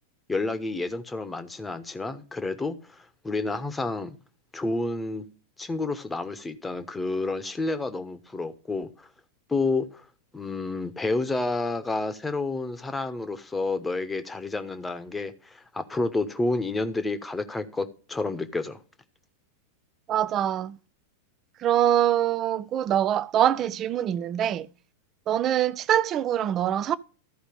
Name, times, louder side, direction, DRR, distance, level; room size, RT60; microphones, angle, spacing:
voice 1, 0.3-3.0 3.2-4.2 4.5-5.2 5.6-9.1 9.5-10.0 10.3-18.8, left 3 dB, 10° left, 1.1 m, -30 dB
voice 2, 20.1-20.8 21.6-24.7 25.3-27.0, right 11 dB, 30° right, 0.5 m, -24 dB
13.5 x 4.9 x 5.2 m
figure-of-eight pair, 90°, 0 cm